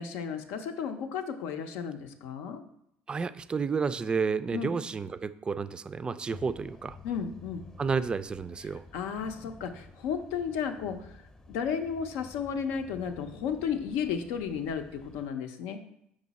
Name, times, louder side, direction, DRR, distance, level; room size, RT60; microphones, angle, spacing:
voice 1, 0.0-2.6 4.5-4.7 7.0-7.6 8.9-11.2 11.5-15.8, left 7 dB, 85° left, 7 dB, 0.6 m, -33 dB
voice 2, 3.1-7.0 7.8-8.8, right 5 dB, 25° right, 14 dB, 0.3 m, -31 dB
sound 1, 6.3-15.3, left 3 dB, 25° left, 0.7 m, -51 dB
5.4 x 5.0 x 4.1 m, 0.74 s
cardioid pair, 105°, 4 cm